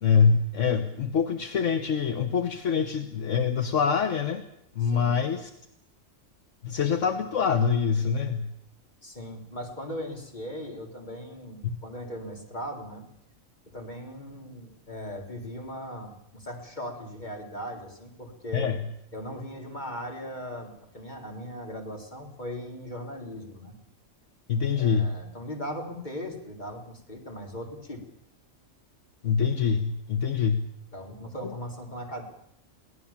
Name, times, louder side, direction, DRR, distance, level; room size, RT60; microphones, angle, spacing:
voice 1, 0.0-4.4 4.8-5.5 6.6-8.5 18.5-18.8 24.5-25.1 29.2-30.7 31.4-31.5, left 6 dB, 65° left, 7 dB, 1.5 m, -25 dB
voice 2, 4.8-5.2 9.0-13.0 13.7-18.7 19.1-23.7 24.8-28.0 30.9-32.2, equal, 35° left, 1 dB, 3.9 m, -38 dB
22.5 x 17.5 x 7.3 m, 0.78 s
omnidirectional pair, 1.4 m